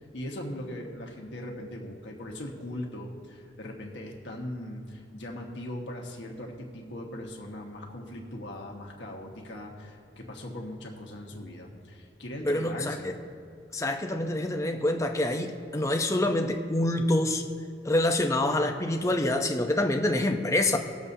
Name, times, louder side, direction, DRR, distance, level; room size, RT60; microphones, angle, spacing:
voice 1, 0.1-13.1, left 1 dB, 75° left, 0 dB, 1.4 m, -39 dB
voice 2, 12.4-13.1 13.7-17.4 17.8-20.8, left 1 dB, 15° left, 4 dB, 0.6 m, -26 dB
19.5 x 7.2 x 2.7 m, 2.3 s
head